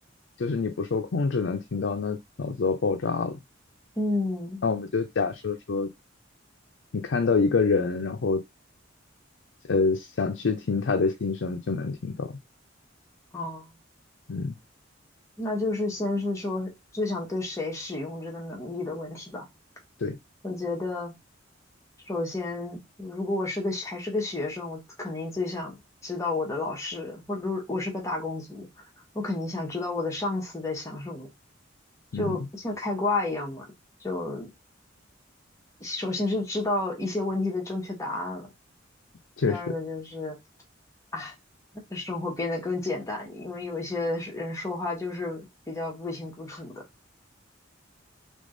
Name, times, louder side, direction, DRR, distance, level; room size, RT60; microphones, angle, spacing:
voice 1, 0.4-3.4 4.6-5.9 6.9-8.4 9.7-12.4 14.3-14.6 20.0-20.2 32.1-32.4 39.4-39.7, left 4 dB, 65° left, 0.5 m, -26 dB
voice 2, 4.0-4.6 13.3-13.7 15.4-19.4 20.4-21.1 22.1-28.7 29.1-31.3 32.1-33.7 34.0-34.5 35.8-38.5 39.4-40.4 41.1-41.3 41.9-46.8, left 2 dB, 15° left, 1.4 m, -31 dB
3.6 x 3.4 x 3.8 m
head